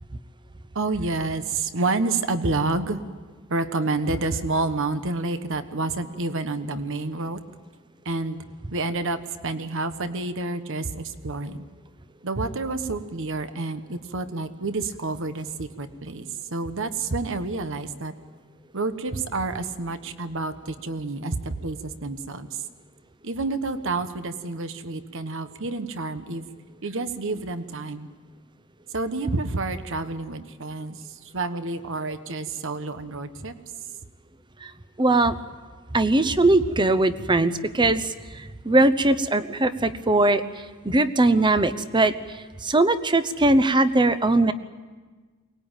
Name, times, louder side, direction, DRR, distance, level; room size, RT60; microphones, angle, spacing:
voice 1, 0.7-3.0 3.5-7.4 8.0-8.4 8.7-11.6 12.2-16.3 16.5-18.1 18.7-22.5 23.2-26.4 26.8-28.1 28.9-33.5, right 3 dB, 65° right, 10 dB, 1.2 m, -29 dB
voice 2, 35.0-35.3 35.9-40.4 40.8-42.1 42.6-44.5, right 2 dB, 20° right, 12 dB, 0.9 m, -20 dB
23.5 x 19.5 x 9.0 m, 1.4 s
head